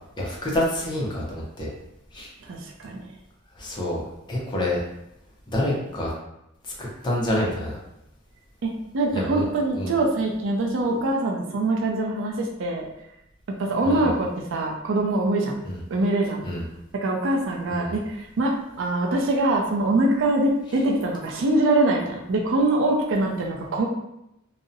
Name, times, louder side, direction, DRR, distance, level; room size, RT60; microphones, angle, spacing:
voice 1, 0.2-1.7 2.1-2.3 3.6-4.0 4.3-4.8 5.5-6.1 6.8-7.7 9.1-9.5 9.7-9.9 13.8-14.1 15.7-15.8 16.4-16.6 17.7-17.9, left 1 dB, 20° left, -3 dB, 0.5 m, -27 dB
voice 2, 2.4-3.0 8.6-12.9 13.5-15.6 15.9-16.5 16.9-23.9, right 2 dB, 70° right, 0 dB, 0.4 m, -24 dB
2.6 x 2.0 x 2.5 m, 0.84 s
head